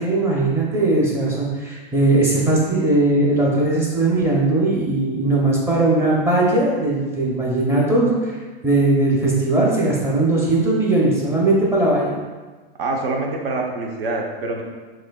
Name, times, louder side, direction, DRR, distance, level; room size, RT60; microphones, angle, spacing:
voice 1, 0.0-8.3 8.6-12.1, right 2 dB, 10° right, -4 dB, 0.6 m, -19 dB
voice 2, 12.8-14.6, right 2 dB, 70° right, 1 dB, 0.9 m, -25 dB
6.1 x 2.6 x 2.3 m, 1.4 s
supercardioid pair, 145°, 30 cm